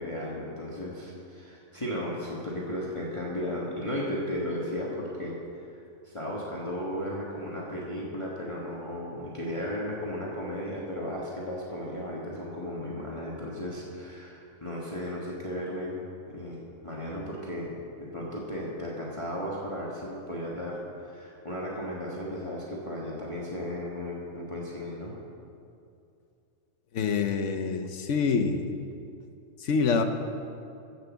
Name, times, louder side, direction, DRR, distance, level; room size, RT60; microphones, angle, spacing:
voice 1, 0.0-5.4 5.7-5.8 6.0-16.0 16.3-25.1, left 1 dB, 25° left, -5 dB, 1.4 m, -35 dB
voice 2, 26.9-28.6 29.6-30.0, left 5 dB, 65° left, 7 dB, 1.1 m, -26 dB
15.5 x 6.1 x 7.0 m, 2.5 s
omnidirectional pair, 1.4 m